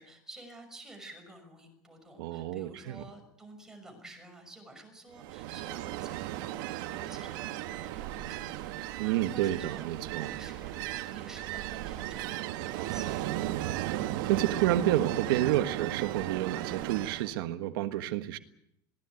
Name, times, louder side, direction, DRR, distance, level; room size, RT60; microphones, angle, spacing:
voice 1, 0.0-13.2, right 2 dB, 5° right, 6.0 m, -51 dB
voice 2, 2.2-3.0 9.0-10.3 13.9-18.4, right 13 dB, 85° right, 1.4 m, -30 dB
Ocean, 5.2-17.3, right 14 dB, 70° right, 1.6 m, -36 dB
22.0 x 18.0 x 9.2 m
cardioid pair, 165°, 12 cm